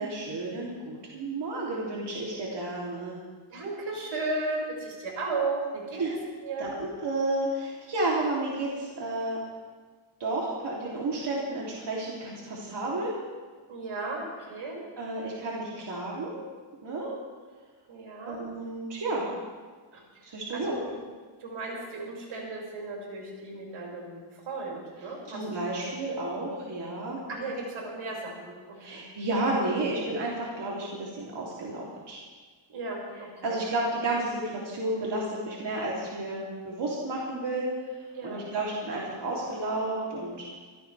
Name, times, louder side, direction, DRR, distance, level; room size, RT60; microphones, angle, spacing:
voice 1, 0.0-3.2 6.0-6.1 6.6-9.4 10.2-13.1 15.0-16.4 16.8-17.1 18.2-19.3 20.2-20.8 25.3-27.4 28.8-32.2 33.4-37.7 37.9-40.6, right 2 dB, 60° right, -5 dB, 3.3 m, -31 dB
voice 2, 3.5-6.2 6.4-6.7 13.7-14.8 17.9-18.4 19.9-20.9 21.4-25.7 27.3-29.0 32.7-33.6 38.1-38.7, right 3 dB, 85° right, -3 dB, 6.2 m, -35 dB
24.5 x 16.5 x 3.5 m, 1.5 s
wide cardioid pair, 135°, 47 cm